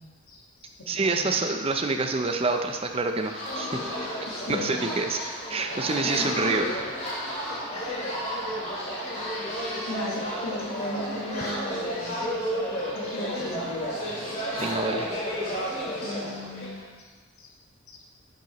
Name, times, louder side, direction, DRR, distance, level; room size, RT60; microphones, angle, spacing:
voice 1, 0.0-1.4 4.3-4.9 6.0-6.8 7.1-7.2 7.5-8.2 8.5-8.7 9.0-9.2 9.6-13.9 14.4-14.5 15.7-17.1 17.4-17.5 17.9-18.0, left 1 dB, 80° left, -2 dB, 1.7 m, -38 dB
voice 2, 0.9-3.8 4.5-5.2 5.5-6.7 14.6-15.1, right 3 dB, 25° right, 5 dB, 0.6 m, -27 dB
sound 1, 3.2-16.8, equal, 35° left, 2.5 m, -32 dB
11.0 x 7.5 x 3.1 m, 1.4 s
head